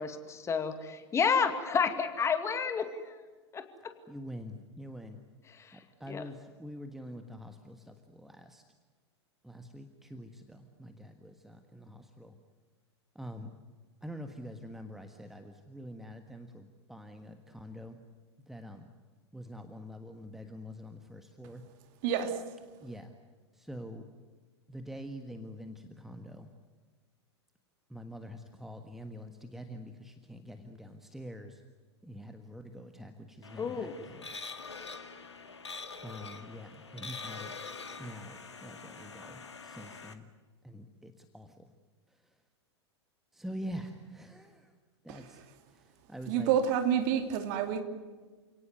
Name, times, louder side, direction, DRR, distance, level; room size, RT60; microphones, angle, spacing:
voice 1, 0.0-3.1 3.5-3.9 5.5-5.8 6.1-6.2 33.6-34.0, left 6 dB, 20° left, 2.3 m, -31 dB
voice 2, 4.1-5.2 5.7-8.6 9.4-12.3 13.1-13.5 14.0-18.0 18.5-18.9 19.3-21.6 22.8-23.1 23.6-24.0 24.7-26.5 27.9-31.6 32.0-33.9 36.0-37.5 38.0-40.2 40.6-41.5 43.3-44.6 45.0-45.4 46.1-46.5, equal, ahead, 1.5 m, -45 dB
sound 1, 33.4-40.1, left 4 dB, 75° left, 2.1 m, -45 dB
voice 3, 46.3-47.8, right 8 dB, 45° right, 2.8 m, -28 dB
29.0 x 18.5 x 9.4 m
figure-of-eight pair, 95°, 14 cm